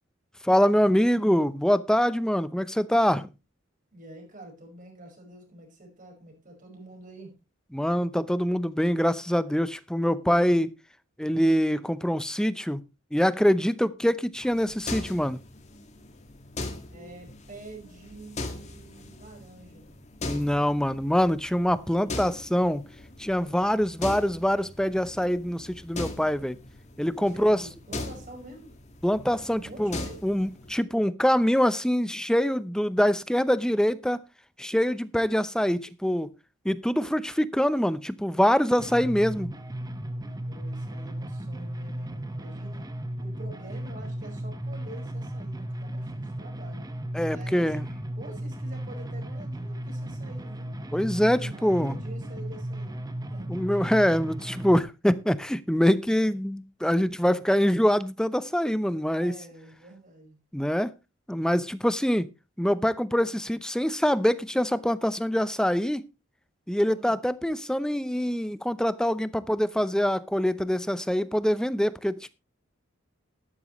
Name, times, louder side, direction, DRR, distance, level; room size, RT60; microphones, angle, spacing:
voice 1, 0.4-3.3 7.7-10.7 11.2-12.8 13.1-15.4 20.2-22.8 23.2-26.6 27.0-27.7 29.0-30.0 30.2-34.2 34.6-36.3 36.6-39.5 47.1-47.9 50.9-52.0 53.5-59.3 60.5-60.9 61.3-62.3 62.6-66.0 66.7-72.3, equal, 5° left, 0.6 m, -24 dB
voice 2, 3.9-7.3 16.9-20.0 27.1-28.7 29.5-30.2 40.4-42.8 43.2-46.8 47.2-47.7 48.2-50.7 51.1-53.0 53.3-53.5 56.2-56.3 59.2-60.4 66.8-67.2, right 2 dB, 40° right, 5.3 m, -46 dB
sound 1, 14.4-30.8, left 2 dB, 35° left, 1.9 m, -40 dB
sound 2, 38.8-54.8, right 1 dB, 20° right, 1.1 m, -35 dB
12.5 x 12.0 x 3.1 m
head